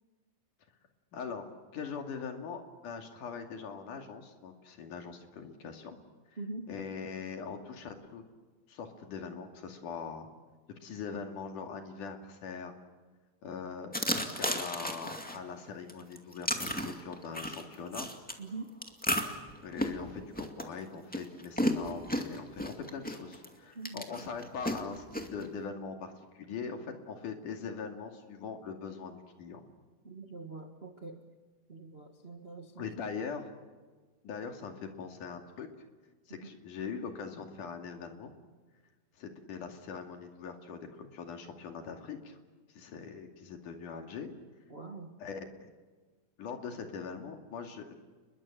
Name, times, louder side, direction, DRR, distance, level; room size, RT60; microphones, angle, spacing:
voice 1, 1.1-6.0 6.7-8.2 8.7-10.3 10.8-12.7 13.4-18.1 19.6-29.6 32.8-33.5 34.2-35.7 36.3-38.3 39.2-42.4 42.7-44.3 45.2-45.7 46.4-47.9, left 5 dB, 65° left, 4 dB, 3.9 m, -42 dB
voice 2, 6.4-6.7 18.4-18.7 23.7-24.0 30.0-31.2 31.7-32.9 36.3-36.4 44.7-45.1, right 3 dB, 75° right, 4 dB, 0.5 m, -43 dB
sound 1, 13.9-15.4 15.9-18.3 18.8-23.5 23.8-25.5, equal, 5° left, 1.3 m, -33 dB
30.0 x 22.0 x 7.6 m, 1.4 s
omnidirectional pair, 4.0 m